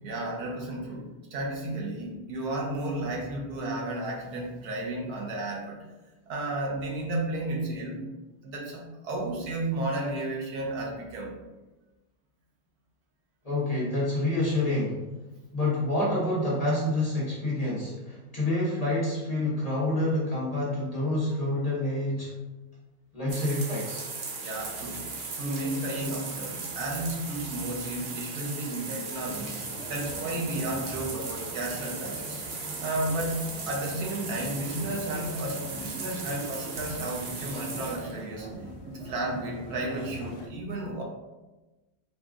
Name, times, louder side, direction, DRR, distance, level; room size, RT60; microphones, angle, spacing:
voice 1, 0.0-5.8 6.3-8.0 8.4-11.4 24.4-25.0 25.4-29.5 29.9-32.4 32.8-38.5 38.8-41.0, right 1 dB, 85° right, -1 dB, 1.4 m, -33 dB
voice 2, 13.4-15.0 15.5-22.3 23.1-24.0, left 1 dB, 30° left, -7 dB, 0.9 m, -28 dB
sound 1, 23.3-38.2, right 4 dB, 55° right, 0.5 m, -37 dB
sound 2, 29.2-40.5, right 1 dB, 55° left, 0.9 m, -42 dB
4.2 x 2.4 x 3.6 m, 1.1 s
omnidirectional pair, 1.5 m